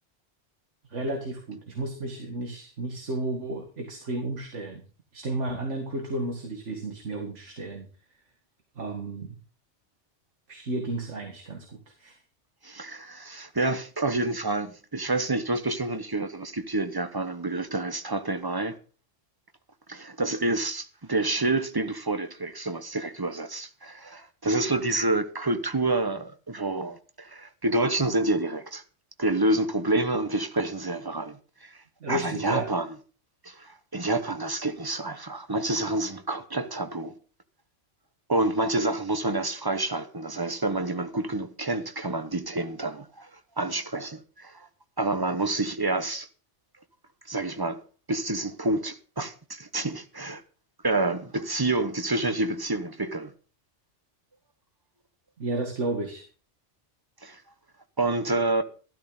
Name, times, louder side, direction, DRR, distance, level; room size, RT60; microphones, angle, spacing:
voice 1, 0.9-4.8 5.1-7.9 8.8-9.3 10.5-12.2 32.0-32.7 55.4-56.2, right 1 dB, 80° right, 2.3 m, -32 dB
voice 2, 12.6-18.7 19.9-28.8 29.2-31.8 32.1-32.9 33.4-37.1 38.3-43.3 43.6-44.7 45.0-46.3 47.3-47.8 48.1-50.4 50.8-53.3 57.2-57.4 58.0-58.6, right 2 dB, 20° right, 1.0 m, -28 dB
13.0 x 12.5 x 4.0 m
omnidirectional pair, 1.2 m